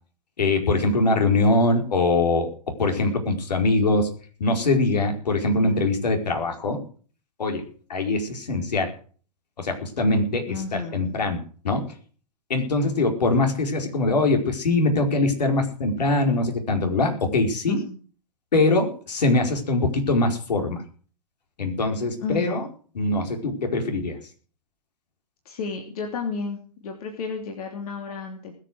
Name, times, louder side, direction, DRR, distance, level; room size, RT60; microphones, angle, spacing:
voice 1, 0.4-2.5 2.8-4.1 4.4-6.8 7.4-7.6 7.9-8.9 9.6-11.8 12.5-17.8 18.5-20.8 21.6-22.7 22.9-24.2, left 2 dB, 80° left, 4 dB, 4.9 m, -22 dB
voice 2, 5.6-5.9 10.5-11.1 17.7-17.9 22.2-22.6 25.4-28.5, left 4 dB, 60° left, 3 dB, 3.2 m, -32 dB
20.5 x 7.6 x 6.4 m, 0.42 s
hypercardioid pair, 120°, 21 cm